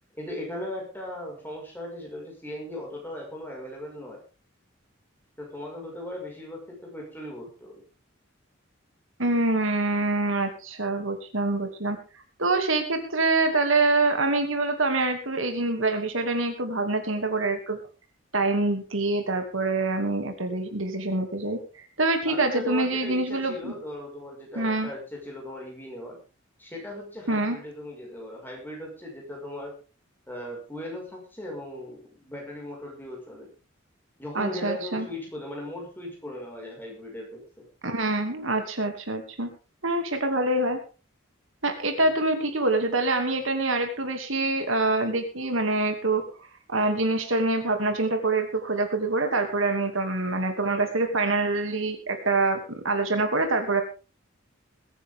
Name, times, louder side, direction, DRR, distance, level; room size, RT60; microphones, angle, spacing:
voice 1, 0.1-4.2 5.4-7.8 22.2-26.2 26.6-29.8 30.3-33.5 34.2-37.7 42.0-42.1, left 1 dB, 10° left, -1 dB, 5.7 m, -38 dB
voice 2, 9.2-12.0 12.4-17.8 18.3-23.7 24.6-24.9 27.3-27.6 34.3-35.1 37.8-39.5 39.8-40.8 41.6-46.2 46.7-53.8, right 2 dB, 70° right, 5 dB, 2.7 m, -25 dB
21.5 x 10.0 x 3.7 m, 0.34 s
head